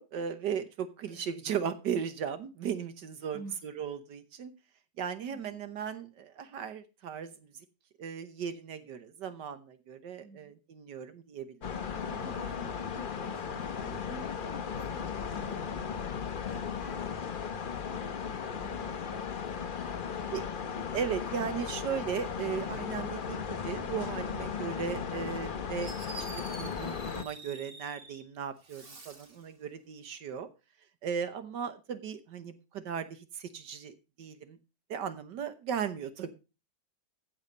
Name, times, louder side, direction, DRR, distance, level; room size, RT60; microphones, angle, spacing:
voice 1, 0.0-4.5 5.0-7.5 8.0-11.6 20.3-20.4 20.9-25.9 26.2-30.5 31.0-34.6 34.9-36.3, right 7 dB, 80° right, 11 dB, 1.7 m, -37 dB
voice 2, 10.2-10.5 11.9-16.1 16.5-17.0 17.9-19.4 19.9-20.4, right 2 dB, 15° left, 1 dB, 7.5 m, -50 dB
sound 1, 11.6-27.2, left 7 dB, 40° left, 0.8 m, -36 dB
Fireworks, 25.8-28.2 28.6-29.4, right 3 dB, 35° right, 1.7 m, -47 dB
15.0 x 7.1 x 5.3 m, 0.30 s
omnidirectional pair, 1.9 m